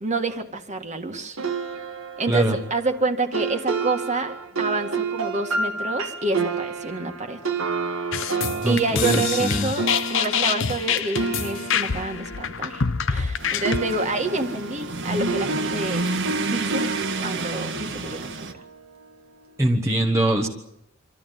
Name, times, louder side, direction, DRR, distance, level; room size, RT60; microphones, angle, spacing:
voice 1, 0.0-1.4 2.2-7.4 8.7-16.1 16.5-16.9 17.2-18.6, right 3 dB, 35° right, 6 dB, 1.8 m, -28 dB
sound 1, 1.4-13.3 13.6-18.9, right 3 dB, 85° right, 1.9 m, -30 dB
sound 2, 8.1-13.8, left 7 dB, 65° left, 0.9 m, -26 dB
voice 2, 8.6-9.7 19.6-20.5, right 1 dB, 15° right, 1 dB, 1.4 m, -22 dB
sound 3, 13.4-18.5, right 3 dB, 60° right, 1.7 m, -30 dB
26.0 x 13.5 x 9.3 m, 0.79 s
head